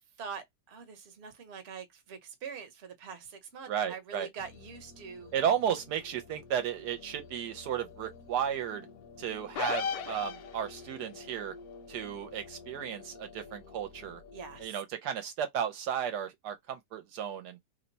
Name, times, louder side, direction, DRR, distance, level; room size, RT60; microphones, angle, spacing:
voice 1, 0.2-5.3 14.3-14.8, right 6 dB, 50° right, 0.9 m, -44 dB
voice 2, 3.7-4.3 5.3-8.9 9.2-11.5 11.9-14.2 14.6-17.6, right 9 dB, 75° right, 1.1 m, -34 dB
sound 1, 4.4-14.7, left 4 dB, 60° left, 1.0 m, -51 dB
sound 2, 9.6-10.9, left 7 dB, 85° left, 1.3 m, -34 dB
2.9 x 2.2 x 3.9 m
omnidirectional pair, 1.8 m